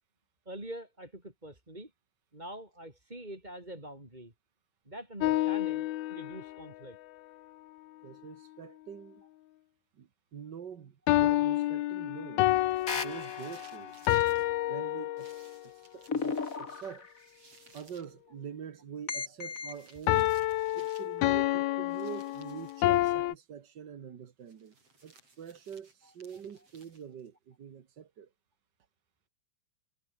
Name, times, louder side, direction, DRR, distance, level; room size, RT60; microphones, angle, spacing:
voice 1, 0.4-1.9 2.3-4.3 4.8-7.0 17.4-17.6, right 1 dB, 10° right, 5.1 m, -45 dB
sound 1, 5.2-6.6 11.1-15.6 20.1-23.3, left 15 dB, 80° left, 2.9 m, -29 dB
voice 2, 8.0-9.2 9.9-12.5 12.9-14.0 14.7-17.1 17.7-20.3 20.7-24.7 25.0-28.3, right 8 dB, 75° right, 0.9 m, -45 dB
sound 2, 12.5-14.5 15.2-18.1 19.4-21.2 21.9-22.9 24.5-27.3, right 3 dB, 40° right, 7.8 m, -59 dB
sound 3, 12.9-13.9 16.1-17.2 19.1-19.8, left 5 dB, 30° left, 1.7 m, -35 dB
omnidirectional pair, 4.4 m